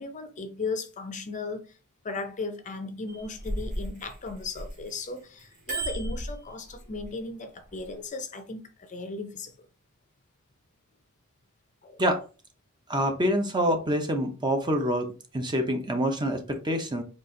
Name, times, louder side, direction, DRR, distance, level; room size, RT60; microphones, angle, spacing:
voice 1, 0.0-1.7 2.0-9.7 11.8-12.0, left 3 dB, 35° left, 0.5 m, -36 dB
Bicycle bell, 3.1-5.0 5.4-7.0 7.7-7.9, right 1 dB, 35° right, 1.5 m, -34 dB
voice 2, 12.9-17.0, equal, 20° right, 0.6 m, -26 dB
4.1 x 2.4 x 3.7 m
head